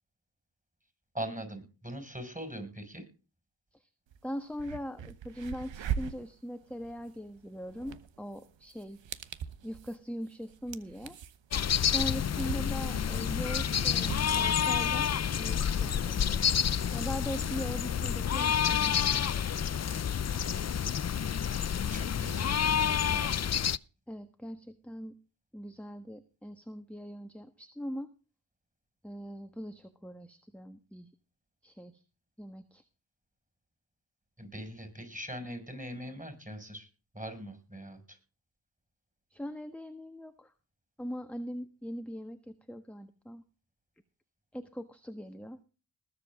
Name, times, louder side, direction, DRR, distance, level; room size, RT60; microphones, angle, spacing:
voice 1, 1.1-3.0 21.9-23.3 34.4-36.9 37.1-38.2, right 1 dB, 20° right, 9 dB, 6.0 m, -41 dB
sound 1, 4.1-4.2 4.5-17.9, right 8 dB, 80° right, 1.2 m, -42 dB
voice 2, 4.2-9.0 9.6-11.2 11.8-16.5 16.9-19.6 24.1-25.1 25.5-28.1 29.0-31.1 31.6-32.0 32.4-32.8 39.3-40.5 41.0-43.4 44.5-45.6, equal, 5° left, 8 dB, 1.4 m, -41 dB
sound 2, 11.5-23.8, left 8 dB, 35° left, 0.5 m, -29 dB
20.0 x 7.8 x 3.7 m, 0.34 s
cardioid pair, 65°, 44 cm